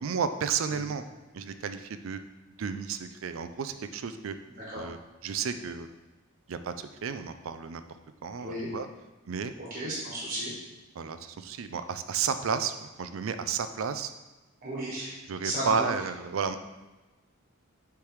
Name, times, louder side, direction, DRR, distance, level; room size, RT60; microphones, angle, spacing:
voice 1, 0.0-1.0 1.3-2.2 2.6-4.3 4.7-5.0 5.2-5.9 6.5-7.8 8.2-8.9 9.3-9.5 11.0-14.1 15.3-16.6, right 6 dB, 70° right, 10 dB, 0.4 m, -32 dB
voice 2, 8.4-8.7 9.6-10.5 14.6-15.1 15.4-15.9, right 1 dB, 45° right, -5 dB, 1.3 m, -34 dB
6.8 x 3.3 x 4.7 m, 1.1 s
head